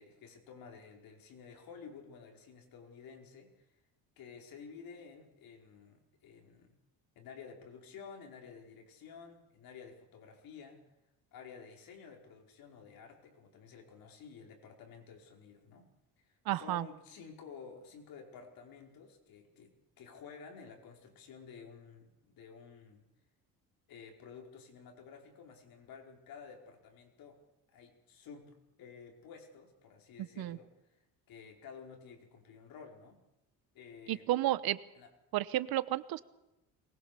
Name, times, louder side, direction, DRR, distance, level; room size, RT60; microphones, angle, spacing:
voice 1, 0.0-3.7 4.2-6.7 7.1-10.8 11.3-15.9 16.2-23.0 23.9-27.4 27.7-31.0 31.3-33.2 33.7-34.3 34.9-35.1, left 6 dB, 70° left, 2 dB, 4.9 m, -52 dB
voice 2, 16.5-16.9 30.4-30.6 34.1-34.8 35.3-36.2, right 15 dB, 80° right, 15 dB, 1.1 m, -32 dB
23.0 x 20.5 x 6.9 m, 0.91 s
cardioid pair, 125°, 36 cm